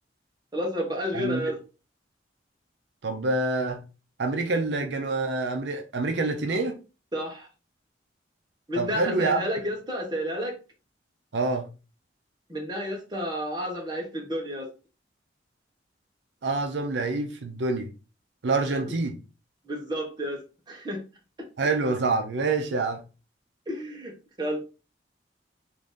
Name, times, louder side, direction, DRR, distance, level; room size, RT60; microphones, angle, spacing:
voice 1, 0.5-1.6 7.1-7.5 8.7-10.6 12.5-14.7 18.8-18.9 19.6-21.0 23.7-24.1 24.4-24.6, equal, 25° right, 0.9 m, -31 dB
voice 2, 1.1-1.5 3.0-3.8 4.2-6.8 8.8-9.4 11.3-11.7 16.4-17.9 18.4-19.2 21.6-23.0, right 3 dB, 75° right, 0.6 m, -26 dB
3.8 x 2.6 x 3.6 m
head